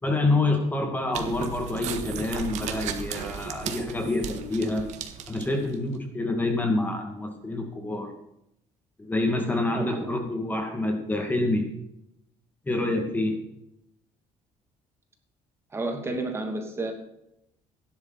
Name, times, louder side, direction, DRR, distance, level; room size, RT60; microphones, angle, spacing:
voice 1, 0.0-4.8 5.3-8.1 9.0-11.7 12.7-13.4, left 2 dB, 15° left, 3 dB, 2.2 m, -27 dB
sound 1, 1.1-5.8, right 8 dB, 75° right, 1.7 m, -35 dB
voice 2, 9.7-10.0 15.7-16.9, right 2 dB, 20° right, 3 dB, 2.6 m, -31 dB
16.5 x 11.0 x 4.1 m, 0.80 s
cardioid pair, 125°, 12 cm